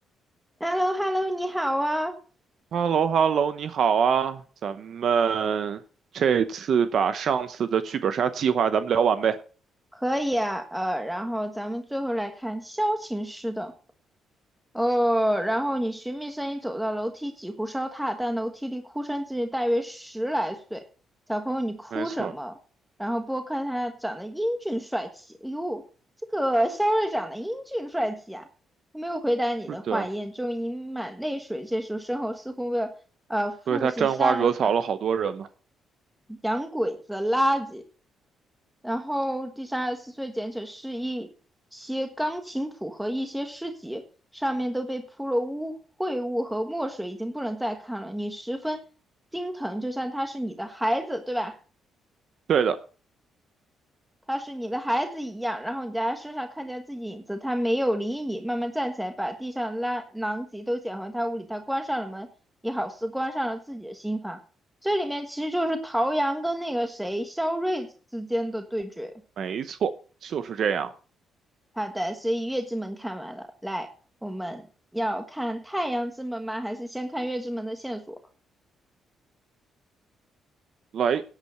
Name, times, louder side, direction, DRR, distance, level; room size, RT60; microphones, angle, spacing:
voice 1, 0.6-2.2 9.9-13.7 14.7-20.8 21.3-22.5 23.0-25.8 26.3-28.4 28.9-32.9 33.3-34.7 36.4-37.8 38.8-41.3 41.7-44.0 44.3-48.8 49.3-51.5 54.3-62.3 62.6-64.4 64.8-69.1 71.7-73.9 74.2-74.6 74.9-78.1, equal, 5° right, 5 dB, 1.4 m, -29 dB
voice 2, 2.7-5.8 6.1-9.4 21.9-22.3 29.9-30.0 33.7-35.5 52.5-52.8 69.4-69.9 70.2-70.9 80.9-81.2, right 7 dB, 60° right, 11 dB, 0.8 m, -24 dB
11.5 x 8.5 x 5.7 m, 0.38 s
cardioid pair, 90°, 0 cm